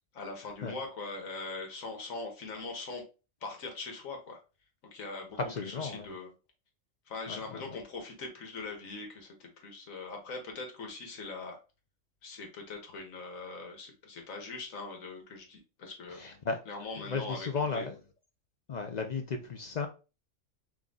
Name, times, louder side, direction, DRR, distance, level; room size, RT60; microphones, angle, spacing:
voice 1, 0.1-3.0 3.4-4.4 4.9-6.3 7.1-11.6 12.2-16.2 16.7-17.9, left 3 dB, 85° left, 1.5 m, -41 dB
voice 2, 5.4-6.1 7.3-7.8 16.1-16.6 17.1-18.0 18.7-19.9, left 4 dB, 60° left, 0.4 m, -35 dB
3.6 x 3.1 x 3.8 m
omnidirectional pair, 1.4 m